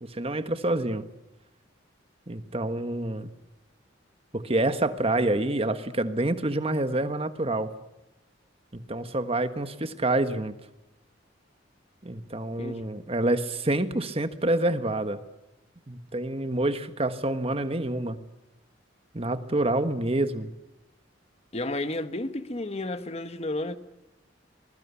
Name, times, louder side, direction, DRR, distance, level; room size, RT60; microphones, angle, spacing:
voice 1, 0.0-1.0 2.3-3.3 4.3-7.7 8.7-10.5 12.0-15.2 15.9-18.2 19.1-20.5, right 2 dB, 30° right, 1.4 m, -27 dB
voice 2, 21.5-23.8, left 2 dB, 35° left, 1.4 m, -32 dB
24.5 x 21.5 x 8.4 m
head